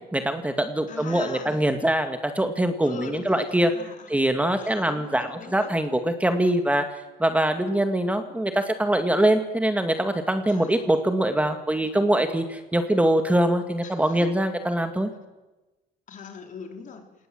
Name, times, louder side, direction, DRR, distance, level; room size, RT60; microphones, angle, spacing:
voice 1, 0.1-3.7 4.1-6.9 7.2-15.1, right 1 dB, 10° right, 7 dB, 2.1 m, -23 dB
voice 2, 0.9-1.7 2.8-4.2 4.6-5.8 10.4-10.9 13.8-14.3 16.1-17.1, left 6 dB, 50° left, 4 dB, 4.1 m, -41 dB
28.0 x 19.0 x 7.9 m, 1.1 s
cardioid pair, 110°, 17 cm